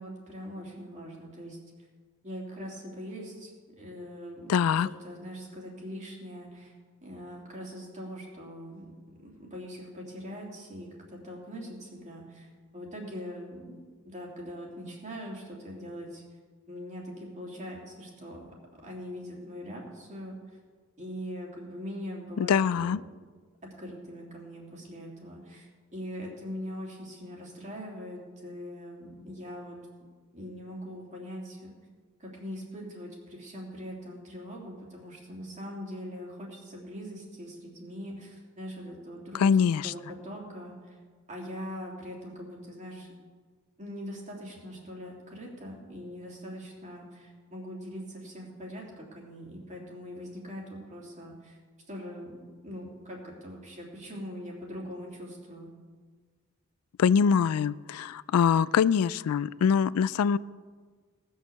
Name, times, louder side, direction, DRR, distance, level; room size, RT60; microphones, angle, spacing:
voice 1, 0.0-1.6 2.2-6.7 7.0-8.9 9.2-16.2 16.7-18.5 18.8-20.6 21.0-23.0 23.8-29.8 30.3-31.7 32.2-39.6 39.8-41.0 41.3-43.1 43.8-51.6 51.9-55.7, equal, 35° right, -2 dB, 2.9 m, -42 dB
voice 2, 4.5-4.9 22.4-23.0 39.3-39.9 57.0-60.4, left 7 dB, 75° left, 19 dB, 0.3 m, -24 dB
18.0 x 6.5 x 6.9 m, 1.5 s
head